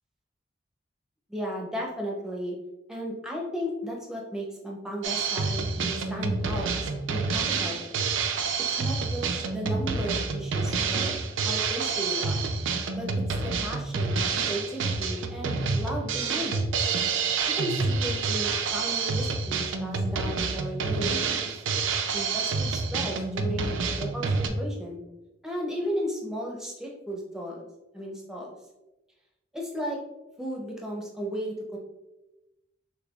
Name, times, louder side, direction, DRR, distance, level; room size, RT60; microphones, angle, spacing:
voice 1, 1.3-2.6 2.9-7.8 8.7-12.5 12.9-14.2 14.5-16.7 17.4-21.5 22.1-25.0 25.4-27.7 27.9-28.5 29.5-30.0 30.4-31.8, equal, 5° right, -1 dB, 0.6 m, -35 dB
Drum kit, 5.0-24.5, right 4 dB, 85° right, 0.4 m, -28 dB
6.4 x 2.3 x 2.3 m, 0.99 s
head